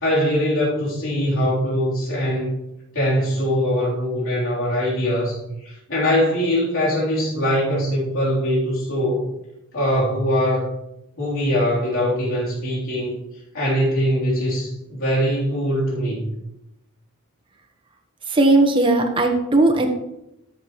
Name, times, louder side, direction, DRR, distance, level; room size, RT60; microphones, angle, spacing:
voice 1, 0.0-2.5 2.9-5.4 5.9-9.2 9.7-10.7 11.2-13.2 13.5-16.3, equal, 65° left, -7 dB, 3.4 m, -22 dB
voice 2, 18.3-19.9, right 2 dB, 25° right, 2 dB, 1.1 m, -17 dB
13.0 x 7.4 x 3.1 m, 0.87 s
head